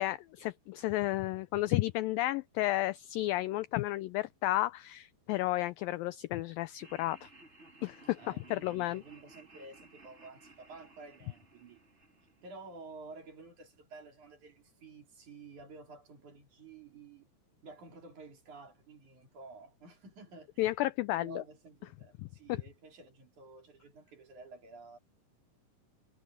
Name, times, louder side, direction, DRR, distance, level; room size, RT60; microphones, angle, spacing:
voice 1, 0.0-7.3 7.8-9.0 20.6-21.4 22.2-22.6, left 17 dB, 85° left, 2.0 m, -32 dB
Laughter, 6.8-13.0, right 2 dB, 20° right, 2.6 m, -58 dB
voice 2, 8.2-11.8 12.4-17.3 17.6-20.7 21.1-25.0, right 3 dB, 50° right, 5.1 m, -51 dB
omnidirectional pair, 4.6 m